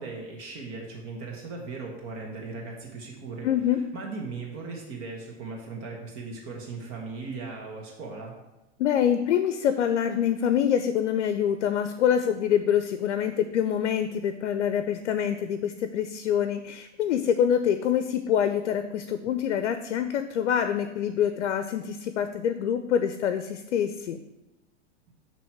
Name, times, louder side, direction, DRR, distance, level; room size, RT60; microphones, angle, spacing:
voice 1, 0.0-8.3, right 3 dB, 40° right, -1 dB, 1.4 m, -38 dB
voice 2, 3.4-3.8 8.8-24.2, left 9 dB, 90° left, 10 dB, 0.5 m, -25 dB
7.8 x 3.0 x 4.5 m, 0.99 s
hypercardioid pair, 125°, 35 cm